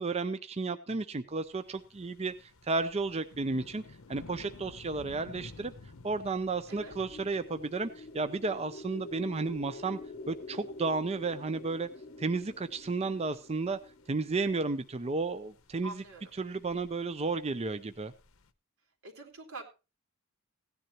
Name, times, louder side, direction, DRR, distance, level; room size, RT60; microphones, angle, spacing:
voice 1, 0.0-3.8 4.1-5.7 6.0-10.0 10.3-11.9 12.2-13.8 14.1-16.0 16.4-18.1, right 3 dB, 30° right, 10 dB, 0.5 m, -33 dB
sound 1, 1.3-18.5, left 2 dB, 75° left, 0.9 m, -55 dB
sound 2, 6.6-14.7, left 2 dB, 40° left, 0.6 m, -47 dB
voice 2, 15.8-16.3 19.0-19.6, right 2 dB, 90° right, 1 dB, 3.7 m, -45 dB
16.5 x 10.5 x 3.0 m, 0.31 s
head